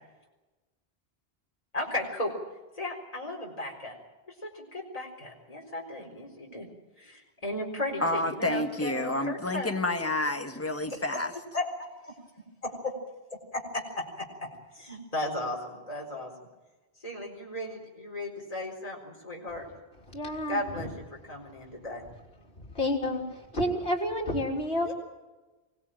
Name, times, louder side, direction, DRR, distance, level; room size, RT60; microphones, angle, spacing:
voice 1, 1.7-2.3 2.8-3.9 4.3-6.7 7.0-9.7 10.0-10.1 10.9-11.2 11.5-12.2 12.6-12.9 13.5-14.5 14.7-16.3 17.0-19.7 20.5-22.0 24.8-24.9, left 1 dB, 35° left, -1 dB, 4.3 m, -35 dB
voice 2, 8.0-11.3, left 2 dB, 15° left, 5 dB, 1.6 m, -29 dB
voice 3, 20.1-20.9 22.6-24.9, left 1 dB, 65° left, -2 dB, 3.5 m, -30 dB
24.0 x 18.5 x 8.9 m, 1.2 s
omnidirectional pair, 1.1 m